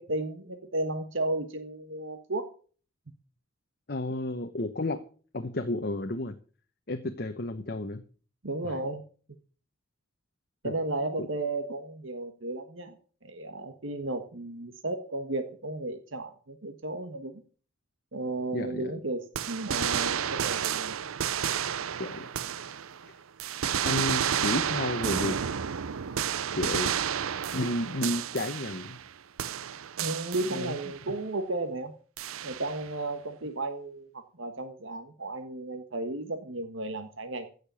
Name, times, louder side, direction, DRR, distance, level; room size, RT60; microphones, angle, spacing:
voice 1, 0.0-2.5 8.4-9.0 10.6-13.0 13.2-17.4 18.1-20.9 30.0-31.9 32.4-37.5, right 2 dB, 70° right, 7 dB, 1.4 m, -34 dB
voice 2, 3.9-5.0 5.3-6.3 6.9-8.0 8.6-8.7 10.6-10.7 11.2-11.3 18.5-18.9 22.0-22.3 23.8-25.4 26.5-27.0 27.5-29.0 30.5-30.7, left 2 dB, 50° left, 6 dB, 0.9 m, -32 dB
sound 1, 19.4-23.1 23.4-29.1 29.4-31.0 32.2-32.9, right 8 dB, 85° right, 0.6 m, -31 dB
16.0 x 6.7 x 6.9 m, 0.42 s
head